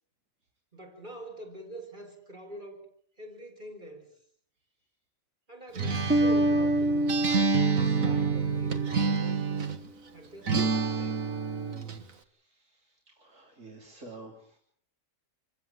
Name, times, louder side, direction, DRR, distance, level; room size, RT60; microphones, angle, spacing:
voice 1, 0.7-2.8 3.2-4.1 5.5-9.6 10.1-11.3, right 1 dB, 35° right, 3 dB, 5.1 m, -45 dB
Acoustic guitar, 5.8-9.9 10.5-12.0, right 5 dB, 80° right, 1.9 m, -28 dB
sound 1, 6.1-9.4, right 1 dB, 10° right, 0.7 m, -27 dB
voice 2, 11.6-14.6, right 2 dB, 65° right, 0 dB, 3.9 m, -51 dB
28.5 x 16.0 x 7.6 m, 0.63 s
omnidirectional pair, 1.4 m